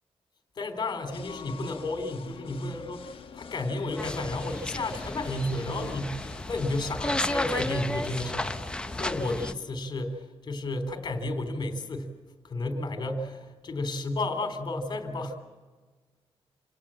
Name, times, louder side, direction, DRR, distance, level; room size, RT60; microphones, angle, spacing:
voice 1, 0.6-12.1 12.4-15.4, left 2 dB, 45° left, 6 dB, 3.6 m, -32 dB
sound 1, 1.1-9.3, left 6 dB, 60° left, 1.3 m, -46 dB
sound 2, 4.0-9.5, left 1 dB, 10° left, 0.8 m, -33 dB
28.0 x 18.0 x 7.6 m, 1.3 s
wide cardioid pair, 155°, 10 cm